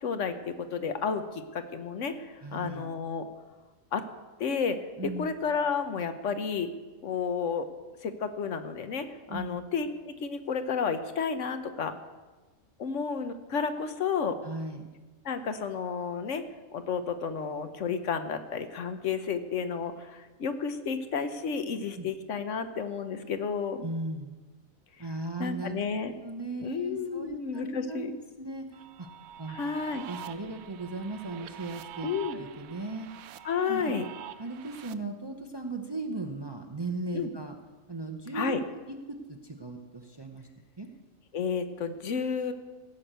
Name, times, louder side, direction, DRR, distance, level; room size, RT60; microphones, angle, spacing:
voice 1, 0.0-3.3 3.9-4.0 4.4-4.8 5.2-6.7 7.0-7.7 8.0-11.9 12.8-14.4 15.2-16.4 16.7-23.8 25.4-26.1 26.6-28.1 29.5-30.0 32.0-32.4 33.4-34.0 37.1-37.3 38.3-38.6 41.3-42.5, left 6 dB, 65° left, 9 dB, 1.1 m, -31 dB
voice 2, 2.4-2.9 5.0-5.3 9.3-9.6 14.4-14.9 21.9-22.1 23.8-24.3 25.0-25.8 26.2-28.1 28.4-28.7 29.0-29.1 29.4-29.6 29.9-33.1 33.7-33.8 34.4-37.5 37.9-40.5 40.8-40.9, right 2 dB, 20° right, 4 dB, 0.8 m, -37 dB
sound 1, 28.7-34.9, right 11 dB, 90° right, 1.1 m, -46 dB
16.0 x 5.9 x 8.0 m, 1.3 s
omnidirectional pair, 1.4 m